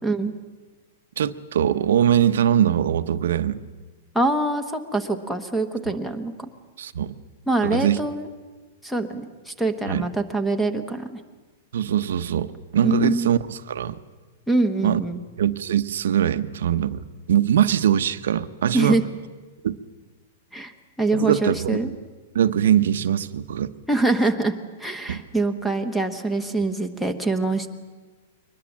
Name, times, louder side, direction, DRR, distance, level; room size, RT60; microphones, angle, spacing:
voice 1, 0.0-0.3 4.1-6.5 7.5-8.3 8.8-11.2 12.8-13.3 14.5-15.2 18.7-19.0 20.5-20.7 21.0-21.9 23.9-24.5 24.8-27.7, right 2 dB, ahead, 9 dB, 1.1 m, -24 dB
voice 2, 1.2-3.6 5.9-6.0 6.8-7.2 7.6-8.0 9.9-10.1 11.7-14.0 14.8-15.0 15.4-17.0 17.3-19.0 19.6-19.8 21.1-22.0 22.3-23.7 25.1-25.2, right 9 dB, 75° right, 11 dB, 0.9 m, -22 dB
23.0 x 20.0 x 7.4 m, 1.3 s
supercardioid pair, 170°, 0 cm